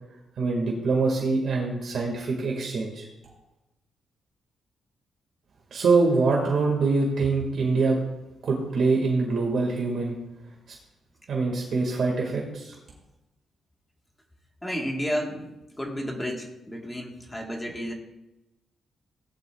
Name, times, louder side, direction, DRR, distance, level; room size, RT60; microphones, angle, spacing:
voice 1, 0.4-3.0 5.7-8.0 8.4-10.2 11.3-12.7, right 3 dB, 50° right, -1 dB, 2.0 m, -24 dB
voice 2, 14.6-15.5 15.8-17.9, equal, 10° left, 0 dB, 1.6 m, -31 dB
17.5 x 11.0 x 2.4 m, 0.98 s
wide cardioid pair, 170°, 0 cm